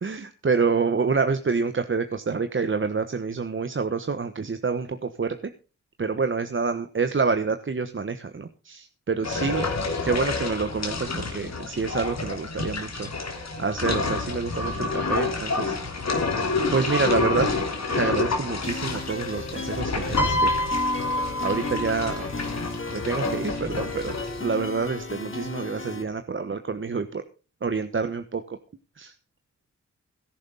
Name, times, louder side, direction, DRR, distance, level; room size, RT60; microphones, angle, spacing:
voice 1, 0.0-5.3 6.0-9.7 10.0-15.8 16.7-17.5 17.9-20.5 21.4-22.3 22.9-27.2 27.6-28.6 29.0-29.1, right 5 dB, 40° right, 9 dB, 1.2 m, -27 dB
sound 1, 9.2-24.4, left 3 dB, 60° left, 3.2 m, -29 dB
sound 2, 18.6-26.0, left 3 dB, 40° left, 2.3 m, -35 dB
Piano, 20.2-22.5 23.6-23.8, left 1 dB, 75° left, 5.5 m, -26 dB
17.0 x 10.5 x 4.0 m, 0.34 s
cardioid pair, 55°, 31 cm